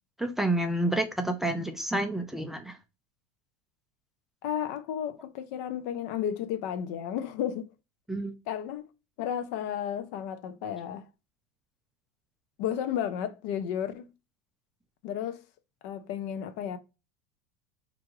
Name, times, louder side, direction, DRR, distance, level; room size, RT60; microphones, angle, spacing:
voice 1, 0.2-2.8 8.1-8.3, right 1 dB, 5° right, 0.3 m, -29 dB
voice 2, 4.4-7.7 8.5-8.9 9.2-11.0 12.6-14.1 15.0-15.4 15.8-16.8, left 9 dB, 60° left, 0.5 m, -33 dB
4.5 x 2.5 x 3.0 m
cardioid pair, 165°, 10 cm